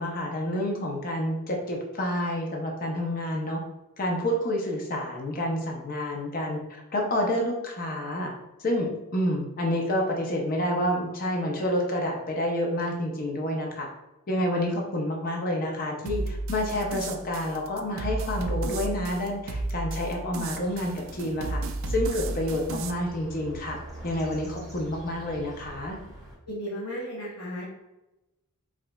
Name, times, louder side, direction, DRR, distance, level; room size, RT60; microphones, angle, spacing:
voice 1, 0.0-3.6 4.0-6.6 6.9-8.3 8.6-13.9 14.3-21.6 21.9-23.8 24.0-26.0, left 1 dB, 40° left, 0 dB, 0.6 m, -29 dB
sound 1, 16.1-22.9, right 2 dB, 60° right, 0.3 m, -33 dB
sound 2, 20.4-26.4, right 1 dB, ahead, 1.3 m, -45 dB
voice 2, 26.5-27.6, equal, 60° left, -6 dB, 0.8 m, -34 dB
4.8 x 2.3 x 2.2 m, 1.0 s
head